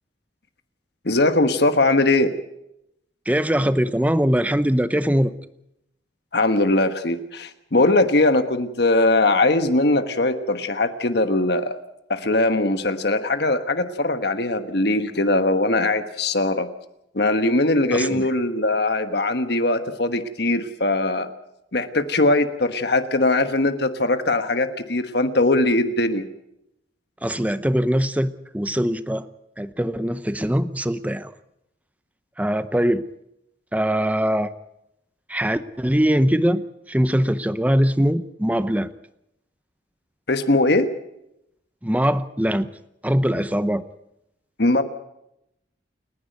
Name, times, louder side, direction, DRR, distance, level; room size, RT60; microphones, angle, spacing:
voice 1, 1.0-2.3 6.3-11.8 12.1-16.7 17.1-21.3 21.7-26.2 40.3-40.9 44.6-44.8, left 2 dB, 60° left, 9 dB, 1.3 m, -20 dB
voice 2, 3.3-5.3 17.9-18.3 27.2-29.3 29.6-31.3 32.4-33.0 33.7-34.5 35.3-36.6 36.9-38.9 41.8-42.7 43.0-43.8, equal, 10° right, 13 dB, 0.7 m, -22 dB
29.0 x 11.0 x 9.3 m, 0.83 s
head